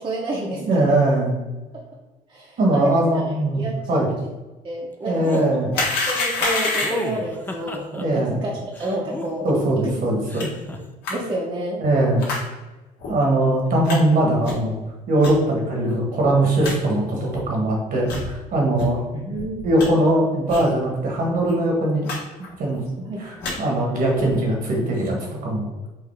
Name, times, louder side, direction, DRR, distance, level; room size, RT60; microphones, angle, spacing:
voice 1, 0.0-1.0 1.7-1.8 2.3-3.1 3.5-4.2 4.6-5.5 6.1-9.5 9.8-9.9 11.1-11.8 19.1-19.6 23.0-23.2, right 1 dB, 30° right, -3 dB, 0.8 m, -29 dB
voice 2, 0.6-1.3 2.6-4.1 5.1-5.7 8.0-8.4 9.4-10.5 11.8-12.2 13.1-14.8 15.1-19.0 19.6-22.1 22.6-22.8 23.2-25.1 25.4-25.7, right 1 dB, 55° right, 0 dB, 1.3 m, -20 dB
sound 1, 5.2-5.5 6.8-8.0 8.7-9.7 10.3-10.8, left 2 dB, 10° left, 0.5 m, -32 dB
sound 2, 5.7-7.2 10.4-10.5 11.0-11.1 12.2-12.4 13.0-13.1 13.9-14.0 14.4-14.7 15.2-15.3 15.9-16.0 16.2-16.3 16.6-16.8 17.3-17.4 18.0-18.3 18.8-18.9 19.3-19.9 20.5-20.7 21.0-21.1 21.3-21.5 22.0-22.2 22.4-22.8 23.2-23.5 24.1-24.4, left 3 dB, 75° left, 1.4 m, -27 dB
4.7 x 2.8 x 3.4 m, 1.1 s
cardioid pair, 110°, 17 cm